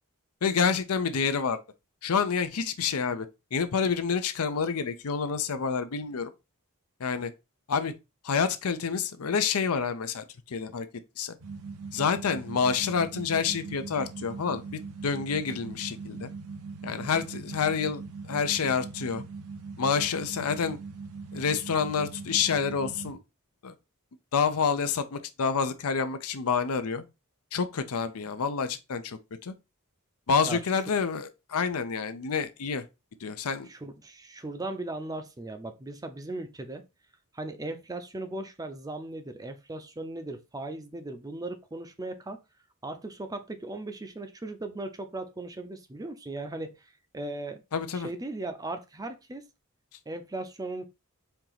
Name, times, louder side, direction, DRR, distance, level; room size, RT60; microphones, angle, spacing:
voice 1, 0.4-1.6 2.0-6.3 7.0-7.3 7.7-7.9 8.2-10.9 11.2-11.4 11.9-16.3 16.8-18.0 18.3-19.2 19.8-20.8 21.3-23.2 23.6-23.7 24.3-27.0 27.5-29.5 30.3-32.8 33.2-33.7 47.7-48.1, left 6 dB, 80° left, 0.6 m, -28 dB
sound 1, 11.4-23.1, right 4 dB, 80° right, 0.8 m, -41 dB
voice 2, 33.7-36.8 37.3-42.4 42.8-47.6 47.9-49.4 50.1-50.9, right 2 dB, 15° right, 0.5 m, -37 dB
4.5 x 2.8 x 3.9 m
head